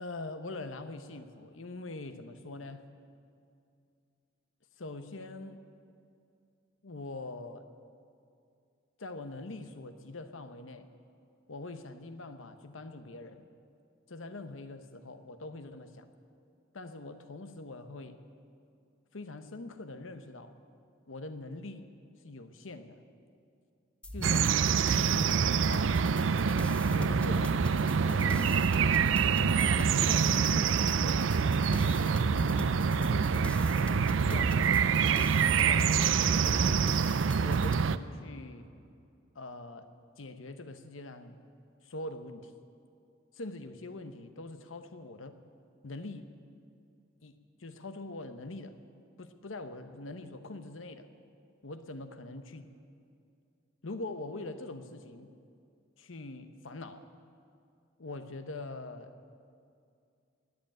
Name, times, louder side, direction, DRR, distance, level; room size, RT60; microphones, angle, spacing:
voice 1, 0.0-2.8 4.8-5.6 6.8-7.7 9.0-10.9 11.5-13.4 14.1-16.1 16.7-18.2 19.1-20.5 21.1-21.9 22.2-23.0 24.1-24.5 24.8-26.1 26.9-27.7 28.0-28.8 29.8-31.6 31.9-35.0 35.7-36.9 37.4-38.7 39.3-39.9 40.2-41.4 41.8-42.5 43.3-45.4 45.8-46.3 47.2-48.8 49.2-51.1 51.6-52.7 53.8-55.3 56.0-57.1 58.0-59.1, left 2 dB, 90° left, 9 dB, 1.0 m, -43 dB
sound 1, 24.0-37.7, left 1 dB, 5° left, 0.5 m, -42 dB
sound 2, 24.2-38.0, right 6 dB, 70° right, 0.5 m, -26 dB
20.0 x 8.0 x 8.8 m, 2.4 s
head